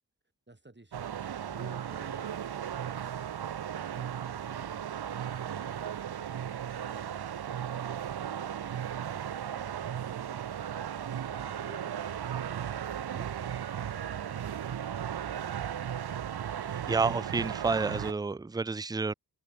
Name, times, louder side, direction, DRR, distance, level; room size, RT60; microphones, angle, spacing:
voice 1, 0.5-3.3, right 2 dB, 25° right, 4.6 m, -56 dB
sound 1, 0.9-18.1, right 9 dB, 65° right, 0.7 m, -36 dB
voice 2, 16.9-19.1, right 4 dB, 10° right, 0.4 m, -29 dB
cardioid pair, 50°, 41 cm